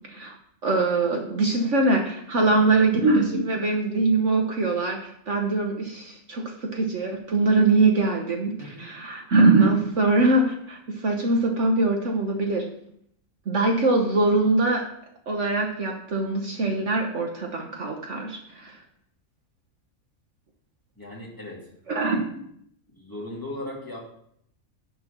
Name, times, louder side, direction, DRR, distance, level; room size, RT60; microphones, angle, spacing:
voice 1, 0.6-12.7 13.5-14.9 15.3-18.8 21.9-22.2, right 3 dB, 55° right, 2 dB, 1.4 m, -22 dB
voice 2, 2.3-2.6 8.6-8.9 21.0-21.6 22.9-24.0, left 1 dB, 15° left, -5 dB, 2.7 m, -37 dB
10.5 x 4.7 x 6.0 m, 0.69 s
omnidirectional pair, 1.5 m